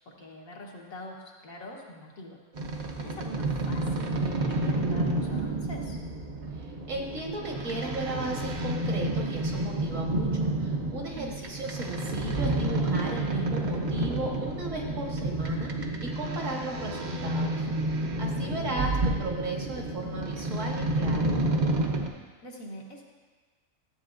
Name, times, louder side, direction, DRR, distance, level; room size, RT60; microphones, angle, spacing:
voice 1, 0.0-2.4 2.7-6.0 11.1-11.3 18.3-18.5 22.4-23.0, left 1 dB, 75° left, -1 dB, 1.6 m, -44 dB
sound 1, 2.5-22.1, right 2 dB, 45° right, 0.7 m, -30 dB
voice 2, 6.6-21.3, right 2 dB, 65° right, -1 dB, 1.7 m, -36 dB
13.0 x 7.7 x 2.5 m, 1.4 s
omnidirectional pair, 1.4 m